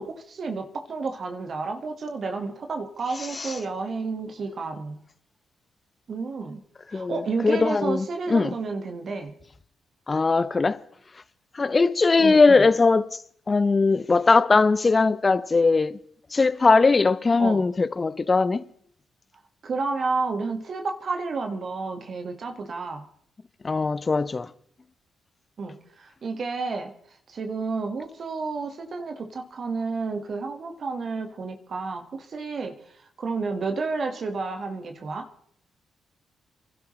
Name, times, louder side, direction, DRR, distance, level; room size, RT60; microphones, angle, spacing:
voice 1, 0.0-5.0 6.1-6.6 6.9-9.3 12.2-12.6 17.4-17.7 19.6-23.0 25.6-26.9 27.3-32.7 33.2-35.3, right 4 dB, 55° right, 1.6 m, -31 dB
voice 2, 6.9-8.5 10.1-10.8 11.6-13.2 13.5-16.0 16.3-18.6 23.6-24.5, left 3 dB, 35° left, 0.7 m, -20 dB
28.0 x 12.0 x 3.2 m
hypercardioid pair, 45°, 0 cm